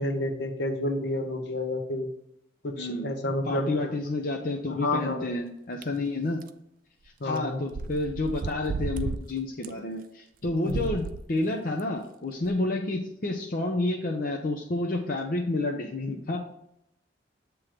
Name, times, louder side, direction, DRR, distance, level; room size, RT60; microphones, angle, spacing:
voice 1, 0.0-2.1 2.6-3.9 4.8-5.3 7.2-7.6 10.6-10.9 16.1-16.2, left 2 dB, 70° left, 4 dB, 0.9 m, -30 dB
voice 2, 2.8-3.1 3.5-6.4 7.2-16.4, left 2 dB, 50° left, 0 dB, 0.6 m, -30 dB
sound 1, 5.8-5.9 6.4-6.5 7.4-7.5 7.7-9.2 9.6-9.7 10.5-11.2 11.8-11.9 12.5-12.6, right 4 dB, 50° right, 0.3 m, -33 dB
7.4 x 3.1 x 4.9 m, 0.78 s
head